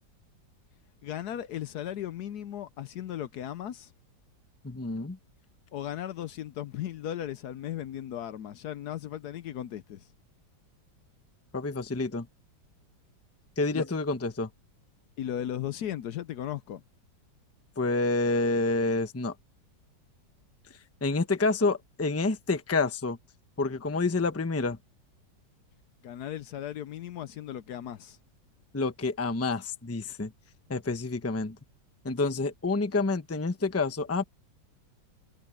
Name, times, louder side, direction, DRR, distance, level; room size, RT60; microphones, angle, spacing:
voice 1, 1.0-3.9 5.7-10.1 13.7-13.9 15.2-16.8 26.0-28.2, left 11 dB, 70° left, 1.2 m, -36 dB
voice 2, 4.6-5.2 11.5-12.3 13.6-14.5 17.8-19.3 20.7-23.2 23.6-24.8 28.7-30.3 30.7-31.6 32.0-34.2, left 3 dB, 10° left, 0.7 m, -28 dB
omnidirectional pair, 1.9 m